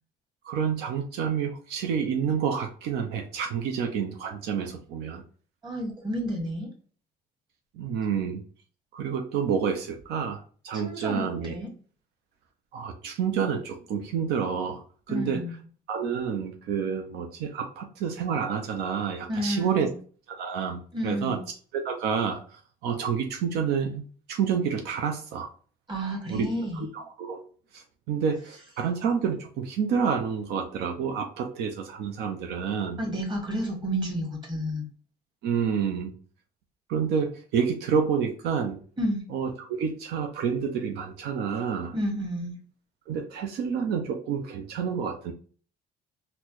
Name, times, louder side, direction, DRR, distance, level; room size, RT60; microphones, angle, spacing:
voice 1, 0.4-5.2 7.7-8.4 8.9-11.5 12.7-14.8 15.1-15.4 15.9-19.9 20.3-21.4 21.7-25.5 26.3-26.5 26.7-27.5 27.7-33.0 35.4-36.1 36.9-38.8 39.3-41.9 43.1-45.3, right 7 dB, 80° right, 3 dB, 0.5 m, -29 dB
voice 2, 5.6-6.7 10.8-11.7 15.1-15.6 19.3-19.9 20.9-21.4 25.9-26.8 33.0-34.9 39.0-39.2 41.9-42.5, equal, 30° right, -1 dB, 1.5 m, -30 dB
4.1 x 2.2 x 3.0 m, 0.42 s
cardioid pair, 100°, 17 cm